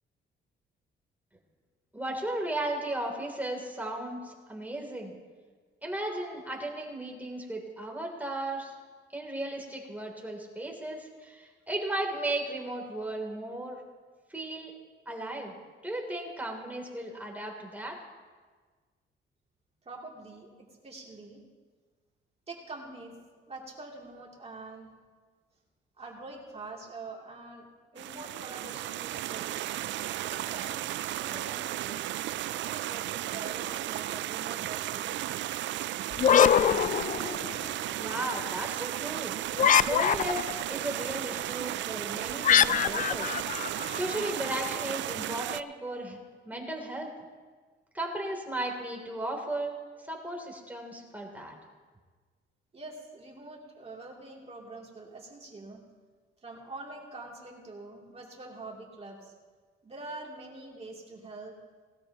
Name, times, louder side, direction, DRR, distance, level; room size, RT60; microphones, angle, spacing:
voice 1, 1.9-5.1 5.8-8.7 9.1-13.8 14.3-14.7 15.0-15.5 15.8-18.0 38.0-39.4 39.8-43.4 43.9-46.2 46.4-47.1 47.9-49.8 50.0-51.5, right 1 dB, 10° right, 0 dB, 3.2 m, -35 dB
voice 2, 19.8-21.4 22.5-23.2 23.5-24.9 26.0-27.7 27.9-29.6 30.2-30.8 31.1-32.1 32.4-35.2 52.7-55.8 56.4-59.3 59.8-61.6, right 2 dB, 30° right, -2 dB, 3.1 m, -45 dB
sound 1, 28.0-45.6, right 14 dB, 70° right, 0.4 m, -34 dB
sound 2, 36.1-37.7 39.5-40.6 42.4-44.3, left 8 dB, 40° left, 0.4 m, -23 dB
19.5 x 13.0 x 3.0 m, 1.5 s
cardioid pair, 90°, 20 cm